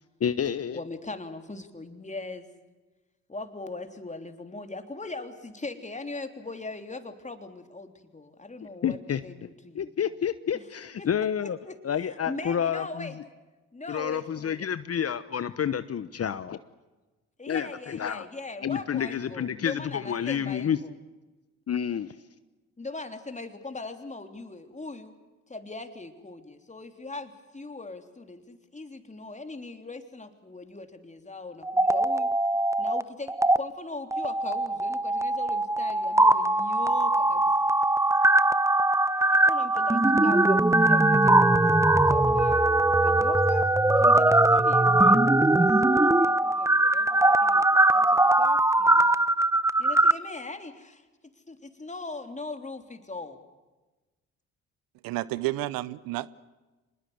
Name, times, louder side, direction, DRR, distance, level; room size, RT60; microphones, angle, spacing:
voice 1, 0.2-0.8 8.8-9.2 9.7-11.6 11.8-13.1 13.9-16.6 17.5-18.2 18.6-20.8 21.7-22.1, left 8 dB, 45° left, 1.1 m, -29 dB
voice 2, 0.7-2.5 3.3-9.9 10.5-10.7 11.0-11.1 11.4-13.2 13.7-14.7 17.4-21.0 22.8-25.1 25.5-32.3 32.8-37.5 39.1-41.7 42.1-49.1 49.8-53.4, left 3 dB, 20° left, 3.4 m, -40 dB
sound 1, 31.6-33.0 33.3-33.6 34.1-50.1, right 2 dB, 10° right, 0.9 m, -21 dB
voice 3, 55.0-56.3, right 17 dB, 75° right, 0.8 m, -31 dB
24.5 x 21.0 x 8.1 m
hypercardioid pair, 60°, 35 cm